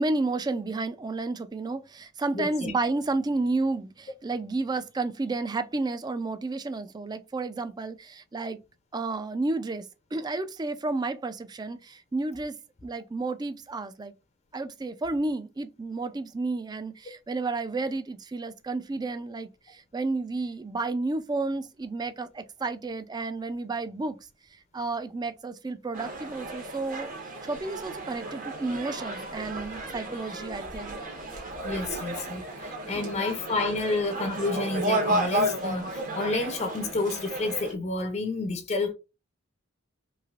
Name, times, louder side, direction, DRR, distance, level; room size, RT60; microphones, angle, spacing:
voice 1, 0.0-8.6 8.9-9.9 10.1-12.6 12.8-14.1 14.5-24.2 24.7-27.1 27.4-31.0 32.9-33.2, right 3 dB, 20° right, 0.3 m, -31 dB
voice 2, 2.3-2.7 31.6-38.9, left 3 dB, 35° left, 0.5 m, -30 dB
sound 1, 25.9-37.7, right 1 dB, 40° right, 1.0 m, -33 dB
3.2 x 2.8 x 2.4 m
head